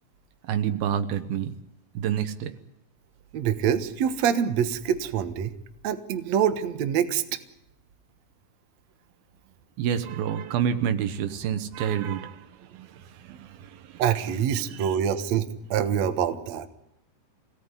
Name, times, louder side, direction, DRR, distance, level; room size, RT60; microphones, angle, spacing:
voice 1, 0.5-1.5 1.9-2.6 9.8-14.0 14.5-15.0, right 9 dB, 70° right, 10 dB, 2.5 m, -29 dB
voice 2, 3.3-5.5 5.8-7.2 14.0-16.7, right 8 dB, 85° right, 8 dB, 1.5 m, -25 dB
24.0 x 18.0 x 9.8 m, 0.84 s
omnidirectional pair, 5.4 m